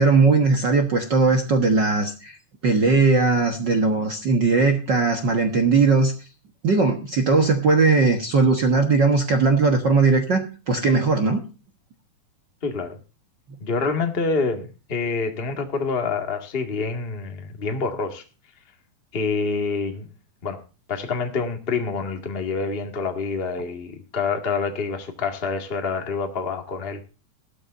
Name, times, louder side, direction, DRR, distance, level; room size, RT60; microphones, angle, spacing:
voice 1, 0.0-2.4 2.6-6.1 6.6-11.4, right 4 dB, 55° right, 4 dB, 1.2 m, -19 dB
voice 2, 12.6-13.0 13.6-18.2 19.1-20.1 20.4-20.6 20.9-27.0, left 4 dB, 25° left, 4 dB, 1.5 m, -27 dB
16.5 x 13.0 x 2.6 m, 0.33 s
omnidirectional pair, 4.0 m